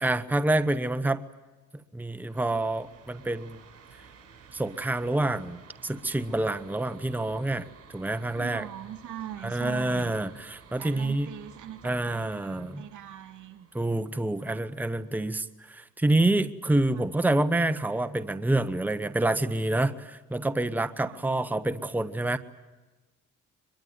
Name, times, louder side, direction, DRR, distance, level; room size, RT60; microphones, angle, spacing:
voice 1, 0.0-1.3 1.7-3.6 4.5-8.7 9.4-11.3 11.8-12.8 13.7-22.4, right 2 dB, 5° right, 11 dB, 1.0 m, -27 dB
sound 1, 2.2-15.6, right 6 dB, 50° right, 7.0 m, -54 dB
voice 2, 8.3-10.1 10.8-13.7 14.4-14.6 16.9-17.0 21.0-21.2, right 11 dB, 80° right, 8 dB, 2.7 m, -41 dB
23.5 x 22.0 x 9.5 m, 1.2 s
cardioid pair, 90°, 30 cm